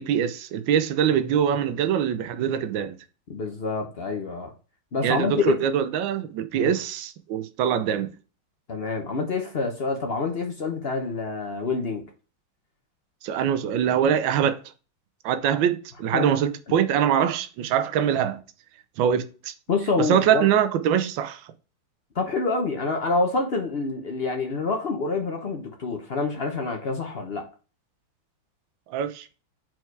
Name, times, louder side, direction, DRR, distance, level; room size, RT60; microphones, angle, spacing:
voice 1, 0.0-3.0 5.0-8.1 13.2-14.6 15.2-18.4 19.0-19.5 20.1-21.4 28.9-29.3, right 9 dB, 75° right, 1.3 m, -23 dB
voice 2, 3.3-4.5 4.9-5.7 6.6-6.7 8.7-12.0 16.1-16.3 19.7-20.5 22.1-27.5, left 3 dB, 60° left, 0.6 m, -27 dB
4.6 x 4.5 x 4.6 m
omnidirectional pair, 2.2 m